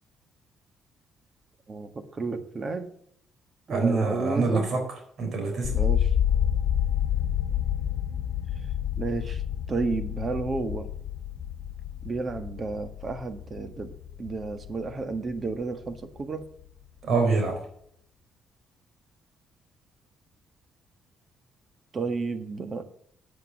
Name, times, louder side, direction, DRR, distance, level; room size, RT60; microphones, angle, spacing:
voice 1, 1.7-2.9 3.7-4.7 5.7-6.1 9.0-9.4 9.7-10.9 12.0-13.9 14.2-16.5 21.9-22.8, right 3 dB, 40° right, 9 dB, 1.5 m, -31 dB
voice 2, 3.7-4.8 5.2-5.7 17.0-17.6, right 4 dB, 60° right, 4 dB, 3.9 m, -25 dB
sound 1, 5.6-15.6 15.9-16.6, left 10 dB, 70° left, 1.1 m, -29 dB
9.1 x 8.0 x 6.5 m, 0.67 s
cardioid pair, 90°, 0 cm